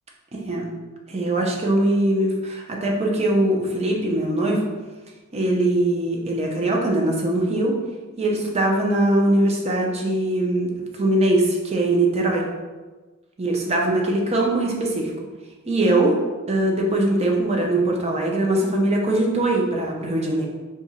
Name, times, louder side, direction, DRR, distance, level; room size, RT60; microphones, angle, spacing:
voice 1, 0.3-0.7 1.1-4.7 5.3-7.8 8.2-12.5 13.4-15.1 15.7-16.1 16.5-20.5, right 1 dB, 30° right, -1 dB, 0.6 m, -21 dB
2.8 x 2.4 x 4.1 m, 1.3 s
head